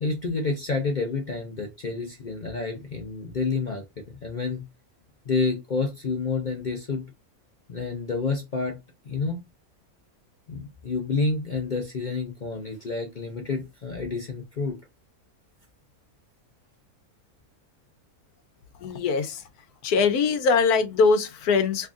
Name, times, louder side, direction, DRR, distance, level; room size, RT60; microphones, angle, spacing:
voice 1, 0.0-4.6 5.3-7.1 7.7-8.8 9.0-9.4 10.5-14.8, left 4 dB, 55° left, 0.5 m, -29 dB
voice 2, 18.8-19.4 19.8-21.9, left 4 dB, 90° left, 1.2 m, -22 dB
3.6 x 3.2 x 2.4 m
omnidirectional pair, 1.6 m